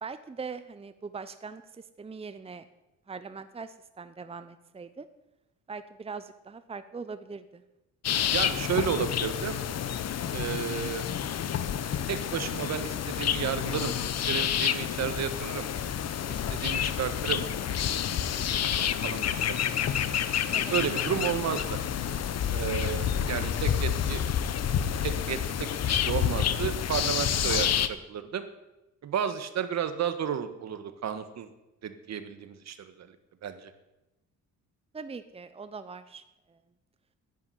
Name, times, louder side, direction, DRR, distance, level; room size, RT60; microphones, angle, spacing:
voice 1, 0.0-2.6 3.1-5.1 5.7-7.6 20.5-20.7 34.9-36.6, right 5 dB, 20° right, 11 dB, 0.8 m, -41 dB
sound 1, 8.0-27.9, left 9 dB, 55° left, 1.0 m, -29 dB
voice 2, 8.3-9.6 10.3-11.0 12.0-13.9 14.3-15.7 16.3-17.4 18.3-19.3 19.8-19.9 20.7-21.8 22.5-24.2 25.0-28.5 29.0-31.5 31.8-33.1 33.4-33.7, right 8 dB, 60° right, 10 dB, 1.5 m, -32 dB
10.5 x 9.4 x 10.0 m, 0.96 s
cardioid pair, 90°, 30 cm